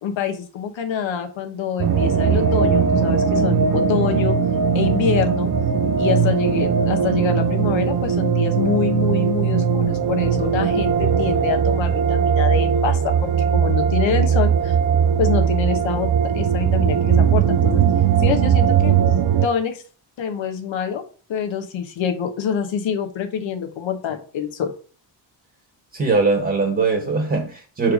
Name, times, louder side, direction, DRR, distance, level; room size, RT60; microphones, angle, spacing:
voice 1, 0.0-4.4 4.7-5.5 6.0-14.8 15.2-17.8 18.2-19.0 19.4-19.8 20.2-21.0 21.3-24.7, left 7 dB, 90° left, 1.3 m, -26 dB
sound 1, 1.8-19.5, right 7 dB, 50° right, 0.6 m, -19 dB
voice 2, 25.9-27.9, right 4 dB, 30° right, 1.6 m, -20 dB
5.0 x 4.6 x 5.0 m
wide cardioid pair, 135°, 45 cm